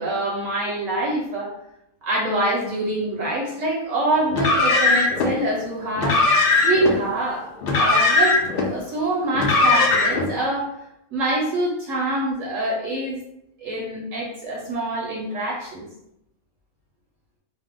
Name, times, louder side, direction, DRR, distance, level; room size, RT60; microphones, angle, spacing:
voice 1, 0.0-1.5 2.0-6.2 6.6-10.7 11.1-13.2 13.6-15.9, right 1 dB, 65° right, -3 dB, 0.9 m, -25 dB
Car, 4.3-5.3 6.0-6.9 7.6-8.7 9.3-10.3, left 3 dB, 70° left, 0.5 m, -19 dB
2.6 x 2.0 x 3.5 m, 0.81 s
omnidirectional pair, 1.6 m